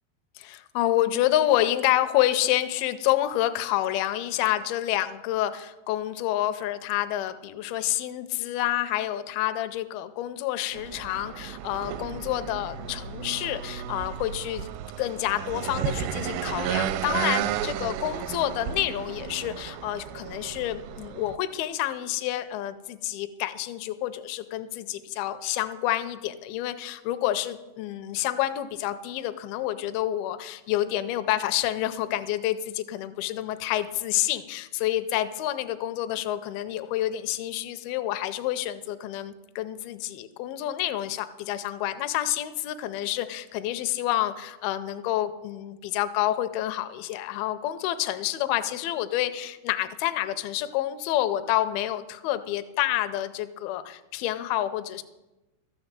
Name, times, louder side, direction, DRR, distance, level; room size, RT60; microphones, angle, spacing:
voice 1, 0.4-14.7 15.0-55.0, left 13 dB, 85° left, 10 dB, 2.2 m, -28 dB
sound 1, 10.7-21.4, right 10 dB, 85° right, 2.7 m, -33 dB
13.0 x 6.3 x 7.5 m, 1.0 s
omnidirectional pair, 4.8 m